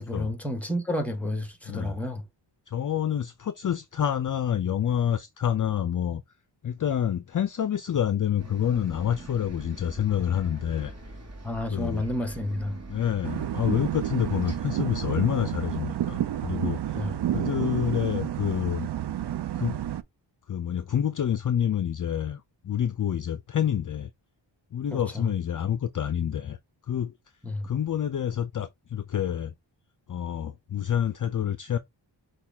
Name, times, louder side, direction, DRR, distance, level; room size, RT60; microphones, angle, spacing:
voice 1, 0.0-2.2 11.4-12.8 16.9-17.2 24.9-25.3 27.4-27.7, left 1 dB, 5° left, 1.0 m, -31 dB
voice 2, 1.7-2.0 2.7-6.2 6.6-10.9 11.7-12.0 12.9-18.9 19.5-19.8 20.5-24.1 24.7-26.6 26.9-27.1 27.6-29.5 30.1-31.8, left 9 dB, 45° left, 0.4 m, -28 dB
Bus, 8.4-14.6, right 2 dB, 35° right, 1.3 m, -44 dB
sound 1, 13.2-20.0, right 12 dB, 65° right, 0.5 m, -30 dB
6.0 x 2.4 x 3.4 m
wide cardioid pair, 120°, 46 cm